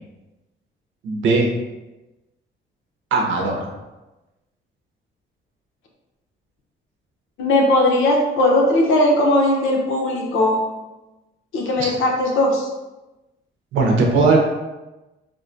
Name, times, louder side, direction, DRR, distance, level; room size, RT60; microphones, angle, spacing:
voice 1, 1.0-1.5 3.1-3.7 11.8-11.9 13.7-14.4, right 3 dB, 80° right, 1 dB, 0.7 m, -18 dB
voice 2, 7.4-10.6 11.5-12.7, left 1 dB, 85° left, 0 dB, 0.7 m, -18 dB
3.6 x 2.2 x 2.5 m, 1.1 s
cardioid pair, 90°, 20 cm